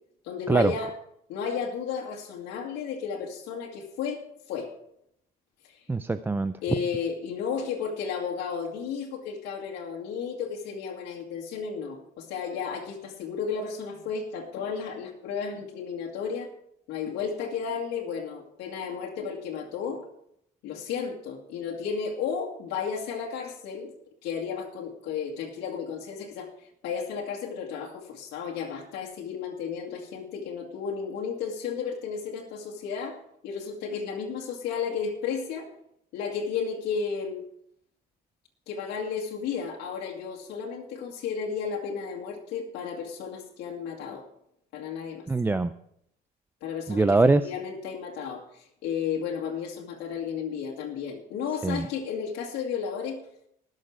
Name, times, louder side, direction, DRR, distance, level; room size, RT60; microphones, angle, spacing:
voice 1, 0.2-0.9 1.3-4.2 4.5-4.7 5.6-5.8 6.6-16.5 16.9-20.1 20.6-23.9 24.2-33.2 33.4-35.7 36.1-37.4 38.7-44.3 44.7-45.3 46.6-47.2 47.4-53.2, left 6 dB, 85° left, -2 dB, 2.1 m, -33 dB
voice 2, 5.9-6.6 45.3-45.7 46.9-47.5 51.6-51.9, right 3 dB, 10° right, 11 dB, 0.4 m, -23 dB
19.5 x 6.6 x 4.8 m, 0.73 s
cardioid pair, 110°, 17 cm